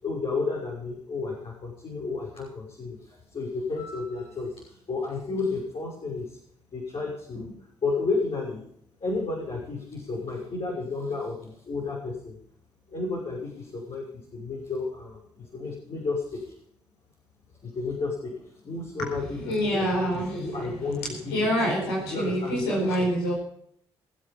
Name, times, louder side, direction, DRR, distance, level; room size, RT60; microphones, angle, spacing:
voice 1, 0.0-6.4 6.7-8.7 9.0-12.4 12.9-16.5 17.7-21.5 22.1-23.1, left 3 dB, 50° left, -3 dB, 6.4 m, -32 dB
voice 2, 19.0-23.3, equal, 90° left, -2 dB, 4.5 m, -27 dB
22.5 x 7.8 x 5.5 m, 0.67 s
hypercardioid pair, 45°, 12 cm